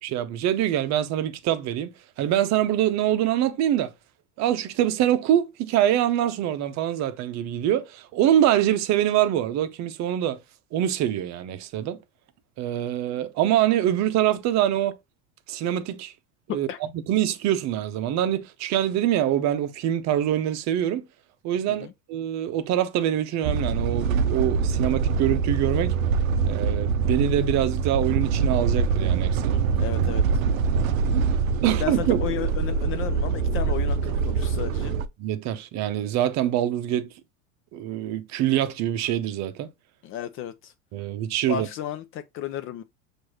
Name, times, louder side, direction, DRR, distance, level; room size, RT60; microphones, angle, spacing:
voice 1, 0.0-1.9 2.2-3.9 4.4-10.4 10.7-12.0 12.6-14.9 15.5-16.1 16.5-16.7 17.1-21.0 21.4-25.9 26.4-29.6 31.6-32.2 35.2-37.1 37.7-39.7 40.9-41.7, right 11 dB, 45° right, 0.7 m, -24 dB
sound 1, 23.4-35.1, right 5 dB, 80° right, 0.5 m, -24 dB
voice 2, 29.5-30.2 31.6-34.9 40.0-40.7 41.5-42.8, left 10 dB, 35° left, 0.4 m, -33 dB
6.1 x 2.6 x 2.9 m
hypercardioid pair, 95°, 40 cm